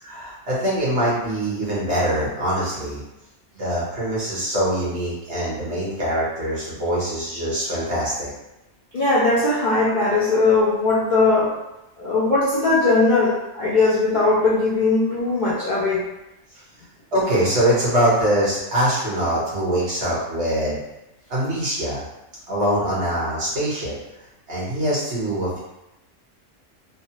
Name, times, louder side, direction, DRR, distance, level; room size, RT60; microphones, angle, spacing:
voice 1, 0.0-3.0 3.6-8.3 17.1-20.8 21.3-22.0 22.5-23.9 24.5-25.6, right 1 dB, 60° right, -7 dB, 1.2 m, -23 dB
voice 2, 8.9-11.6 12.0-16.0, left 3 dB, 45° left, -9 dB, 0.7 m, -19 dB
3.1 x 2.1 x 2.8 m, 0.93 s
omnidirectional pair, 1.3 m